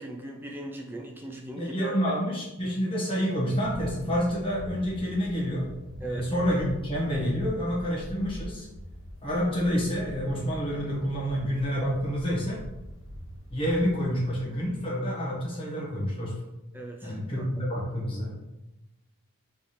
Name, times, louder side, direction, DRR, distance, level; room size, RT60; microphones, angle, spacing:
voice 1, 0.0-2.2 6.0-6.3 16.7-17.7, right 2 dB, 10° right, 0 dB, 0.5 m, -38 dB
voice 2, 1.6-5.7 6.0-8.7 9.2-12.6 13.5-16.3 17.0-18.3, equal, 25° left, -5 dB, 1.3 m, -28 dB
sound 1, 3.6-14.9, equal, 60° left, 1.1 m, -43 dB
3.5 x 3.3 x 4.3 m, 0.97 s
head